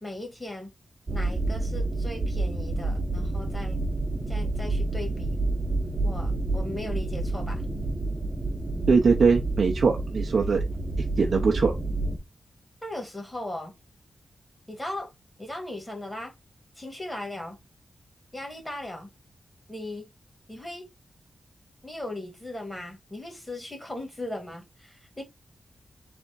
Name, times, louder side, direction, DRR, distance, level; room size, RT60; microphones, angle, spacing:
voice 1, 0.0-0.7 1.1-3.8 4.3-5.3 6.0-7.6 12.8-13.7 14.7-15.1 15.4-16.3 16.8-17.6 18.3-19.1 19.7-20.1 20.5-20.8 21.8-25.2, left 1 dB, 15° left, 1.9 m, -37 dB
sound 1, 1.1-12.2, right 2 dB, 30° right, 0.9 m, -29 dB
voice 2, 8.9-10.6 11.2-11.7, right 5 dB, 65° right, 0.7 m, -21 dB
3.5 x 3.4 x 4.0 m
wide cardioid pair, 105°, 0 cm